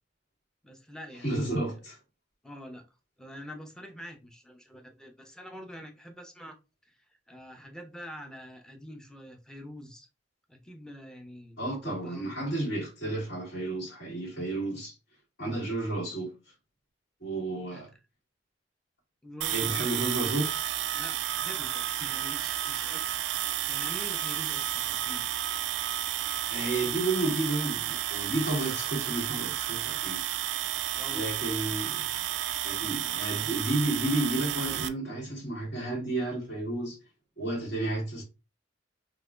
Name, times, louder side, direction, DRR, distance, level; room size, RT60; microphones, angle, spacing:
voice 1, 0.6-1.7 2.4-2.8 3.2-6.6 6.9-10.1 10.5-12.3 17.7-17.8 19.2-20.4 20.9-23.1 23.7-25.2 30.9-31.3, equal, 5° left, 0.6 m, -45 dB
voice 2, 1.2-2.0 11.6-14.9 15.4-16.3 17.2-17.9 19.5-20.6 26.5-30.2 31.1-32.1 32.6-37.0 37.4-38.2, right 2 dB, 65° left, 2.2 m, -31 dB
sound 1, 19.4-34.9, right 12 dB, 80° right, 0.3 m, -32 dB
4.0 x 3.0 x 2.4 m
head